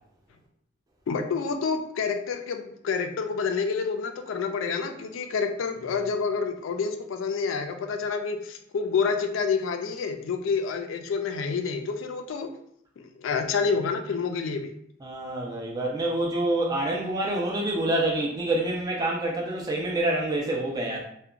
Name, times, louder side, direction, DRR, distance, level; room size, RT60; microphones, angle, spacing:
voice 1, 1.1-12.5 13.0-14.7, left 5 dB, 80° left, 5 dB, 0.3 m, -28 dB
voice 2, 15.0-21.0, right 1 dB, 20° right, -2 dB, 0.3 m, -27 dB
2.7 x 2.1 x 2.4 m, 0.70 s
head